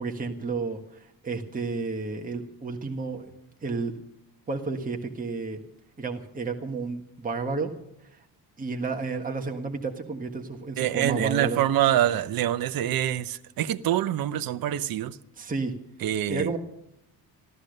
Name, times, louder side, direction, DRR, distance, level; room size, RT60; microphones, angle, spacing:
voice 1, 0.0-3.3 3.6-3.9 4.5-5.6 6.0-7.7 8.1-8.2 8.6-11.6 15.4-15.7 16.3-16.6, right 4 dB, 20° right, 1.6 m, -31 dB
voice 2, 10.8-15.2 16.0-16.5, right 12 dB, 60° right, 0.8 m, -25 dB
14.0 x 13.5 x 6.5 m
cardioid pair, 130°, 39 cm